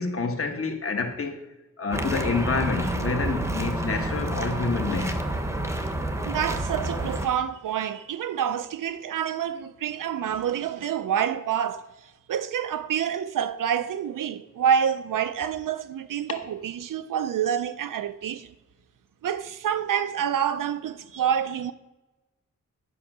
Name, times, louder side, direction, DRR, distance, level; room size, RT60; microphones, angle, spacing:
voice 1, 0.0-1.4 1.8-5.3 16.3-16.4, left 4 dB, 45° left, 1.2 m, -28 dB
sound 1, 1.9-7.3, right 1 dB, 10° right, 0.7 m, -29 dB
voice 2, 6.2-18.5 19.2-21.7, right 9 dB, 90° right, 0.5 m, -27 dB
10.0 x 5.4 x 6.0 m
wide cardioid pair, 175°, 31 cm